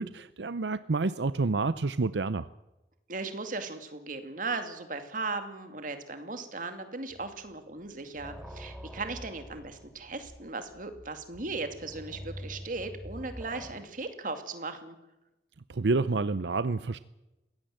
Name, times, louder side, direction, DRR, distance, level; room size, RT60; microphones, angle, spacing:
voice 1, 0.0-2.5 15.7-17.0, right 3 dB, 85° right, 15 dB, 0.7 m, -28 dB
voice 2, 3.1-15.0, right 3 dB, 50° right, 8 dB, 2.4 m, -37 dB
sound 1, 7.1-7.5 7.9-13.8, equal, 5° right, 2.1 m, -46 dB
22.0 x 17.0 x 7.8 m, 0.97 s
head